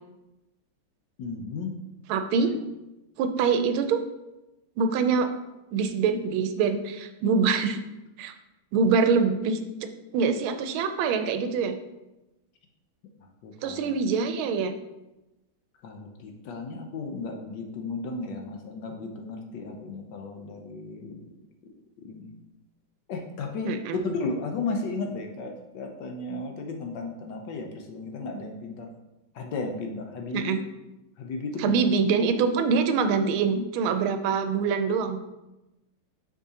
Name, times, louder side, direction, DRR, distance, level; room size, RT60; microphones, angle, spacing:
voice 1, 1.2-1.7 13.4-13.9 15.8-21.3 22.0-22.3 23.1-23.7 24.0-28.9 29.3-30.6 31.2-31.8, left 3 dB, 70° left, 3 dB, 1.2 m, -34 dB
voice 2, 2.1-2.5 3.2-4.0 4.8-5.3 5.7-7.8 8.2-8.3 8.7-11.7 13.6-14.7 23.6-24.0 30.3-30.6 31.6-35.2, right 5 dB, 85° right, 8 dB, 1.4 m, -24 dB
6.2 x 5.4 x 2.8 m, 0.98 s
omnidirectional pair, 2.2 m